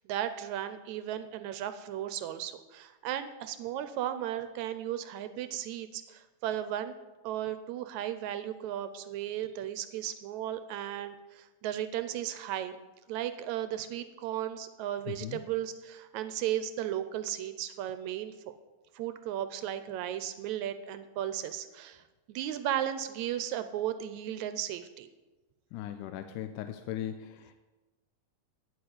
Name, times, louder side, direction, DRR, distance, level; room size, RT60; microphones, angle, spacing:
voice 1, 0.1-6.9 7.2-12.8 13.1-18.3 19.0-22.0 22.3-25.1, right 11 dB, 80° right, 11 dB, 1.9 m, -35 dB
voice 2, 15.1-15.4 25.7-27.5, left 11 dB, 85° left, 8 dB, 2.2 m, -38 dB
9.8 x 8.0 x 9.5 m, 1.1 s
omnidirectional pair, 3.6 m